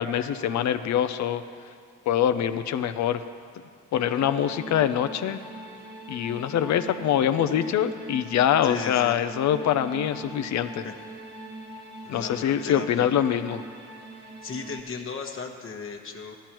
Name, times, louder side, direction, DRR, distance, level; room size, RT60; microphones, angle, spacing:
voice 1, 0.0-1.4 2.1-3.2 3.9-5.4 6.1-10.9 12.1-13.6, left 10 dB, 65° left, 10 dB, 0.6 m, -24 dB
sound 1, 3.9-14.8, right 1 dB, 35° right, 1.3 m, -42 dB
voice 2, 8.6-9.2 10.8-11.0 12.0-13.1 14.4-16.3, left 5 dB, 45° left, 1 dB, 1.1 m, -36 dB
16.0 x 13.0 x 3.0 m, 2.2 s
cardioid pair, 90°, 30 cm